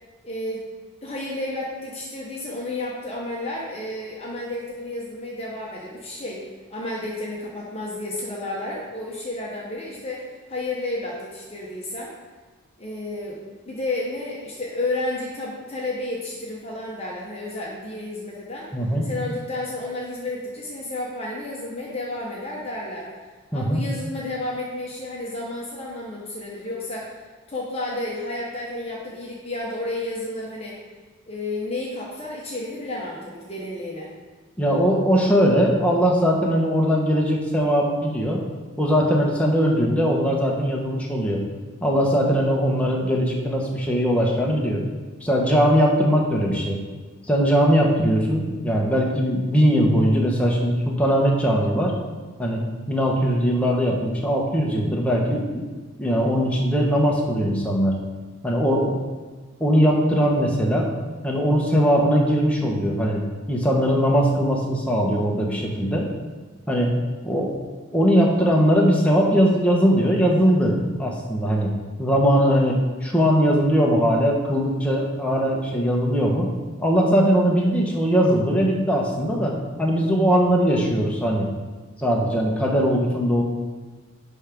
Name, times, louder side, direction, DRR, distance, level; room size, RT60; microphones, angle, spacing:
voice 1, 0.2-0.7 1.0-12.1 12.8-18.7 19.0-23.1 23.5-27.1 27.5-30.8 31.3-34.1, left 2 dB, 30° left, -4 dB, 1.0 m, -31 dB
voice 2, 18.7-19.0 23.5-23.8 34.6-38.4 38.8-41.4 41.8-44.8 45.2-46.8 47.3-51.9 52.4-52.6 52.9-55.6 56.0-58.0 58.4-58.9 59.6-60.9 61.2-66.0 66.7-66.9 67.2-67.6 67.9-76.5 76.8-81.5 82.0-83.4, equal, 5° left, -2 dB, 1.1 m, -20 dB
10.5 x 3.5 x 5.2 m, 1.4 s
head